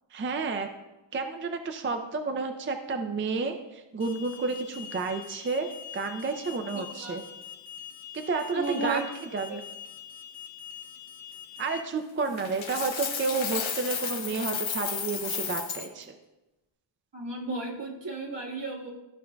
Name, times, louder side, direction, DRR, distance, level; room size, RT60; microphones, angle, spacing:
voice 1, 0.1-0.7 1.1-7.2 8.1-9.0 9.3-9.6 11.6-16.2, right 4 dB, 25° right, 6 dB, 0.4 m, -31 dB
Alarm, 4.0-11.8, left 8 dB, 55° left, 0.9 m, -44 dB
voice 2, 6.7-7.2 8.5-9.0 9.5-9.6 17.1-18.9, right 3 dB, 70° right, -3 dB, 1.8 m, -34 dB
Coin (dropping), 12.4-15.9, left 7 dB, 85° left, 0.8 m, -33 dB
13.0 x 5.2 x 2.2 m, 1.0 s
wide cardioid pair, 110°, 45 cm